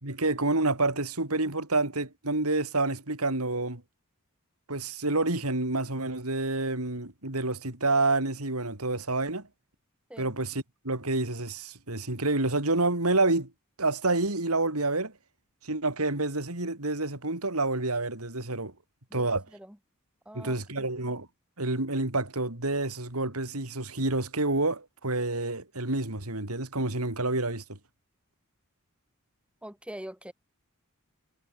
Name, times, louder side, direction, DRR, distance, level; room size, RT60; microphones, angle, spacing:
voice 1, 0.0-3.8 4.7-9.5 10.2-13.5 13.8-15.1 15.6-18.7 19.1-19.4 20.3-21.3 21.6-27.8, right 2 dB, 85° right, 4.2 m, -28 dB
voice 2, 19.1-19.8 20.2-20.9 29.6-30.3, equal, 5° right, 3.0 m, -44 dB
head